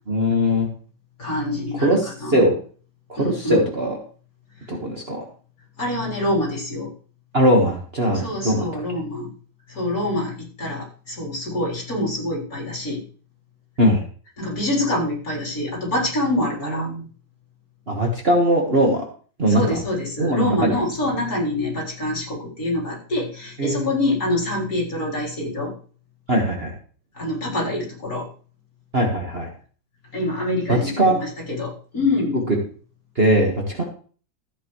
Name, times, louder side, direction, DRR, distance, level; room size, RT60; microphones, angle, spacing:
voice 1, 0.1-0.7 1.7-2.5 3.1-4.0 4.7-5.2 7.3-8.7 13.8-14.0 16.6-17.1 17.9-19.0 19.4-19.8 20.2-20.9 23.6-23.9 26.3-26.7 28.9-29.5 30.7-31.2 32.5-32.6 33.2-33.8, equal, 30° right, 0 dB, 1.8 m, -20 dB
voice 2, 1.2-2.5 3.2-3.6 5.8-6.9 8.1-9.3 9.7-13.0 14.4-16.9 19.5-25.7 27.2-28.2 30.1-32.4, left 1 dB, 45° left, -3 dB, 4.5 m, -25 dB
14.0 x 8.4 x 3.3 m, 0.41 s
omnidirectional pair, 2.2 m